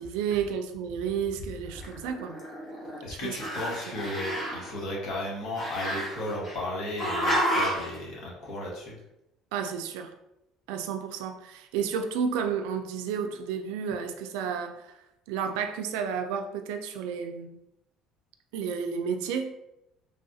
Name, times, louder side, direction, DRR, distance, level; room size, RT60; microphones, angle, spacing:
voice 1, 0.0-2.4 3.2-3.3 9.5-10.1 10.7-14.9 15.3-17.5 18.5-19.5, right 7 dB, 90° right, 6 dB, 0.3 m, -31 dB
Growling, 1.7-3.0 3.3-4.7 5.6-6.6 7.0-7.9, equal, 45° left, 1.2 m, -30 dB
voice 2, 3.0-9.0, left 1 dB, 65° left, -4 dB, 1.3 m, -34 dB
3.4 x 2.3 x 2.6 m, 0.87 s
cardioid pair, 110°, 0 cm